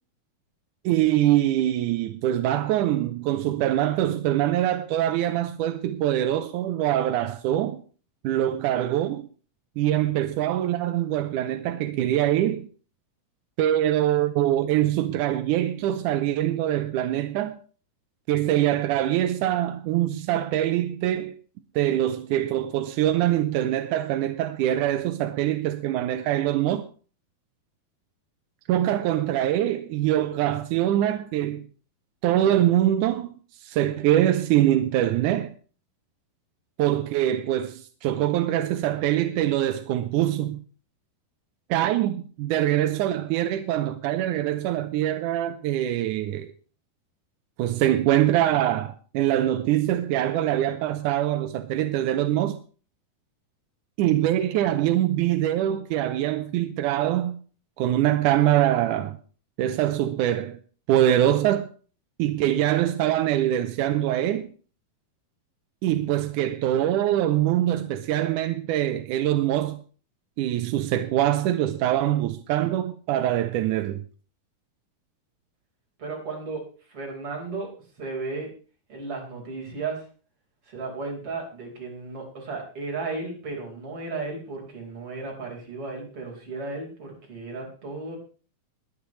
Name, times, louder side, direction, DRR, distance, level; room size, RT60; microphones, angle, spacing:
voice 1, 0.9-7.8 8.2-9.3 9.8-12.7 13.6-17.5 18.3-21.4 21.8-26.8 28.7-31.7 32.2-35.5 36.8-40.6 41.7-46.5 47.6-52.6 54.0-57.4 57.8-59.2 59.6-60.6 60.9-61.7 62.2-64.5 65.8-69.8 70.4-74.0, right 12 dB, 75° right, 1.9 m, -24 dB
voice 2, 76.0-76.6 76.9-77.7 78.0-78.5 78.9-80.0 80.7-88.2, right 3 dB, 40° right, 5.2 m, -34 dB
21.5 x 10.0 x 3.1 m
omnidirectional pair, 4.2 m